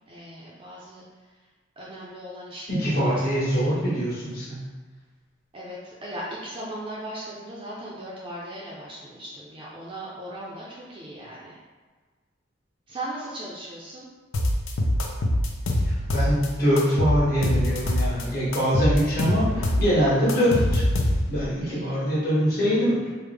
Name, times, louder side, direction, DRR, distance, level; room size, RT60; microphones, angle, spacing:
voice 1, 0.1-1.1 1.8-3.8 5.5-11.6 12.9-14.1 21.6-21.9, right 1 dB, 25° right, -6 dB, 0.4 m, -38 dB
voice 2, 2.7-4.6 15.9-20.8 21.3-23.1, equal, 50° left, -8 dB, 1.3 m, -23 dB
sound 1, 14.3-16.5 16.8-18.2 18.5-21.5, left 1 dB, 85° left, 0.4 m, -24 dB
3.3 x 2.0 x 3.3 m, 1.4 s
head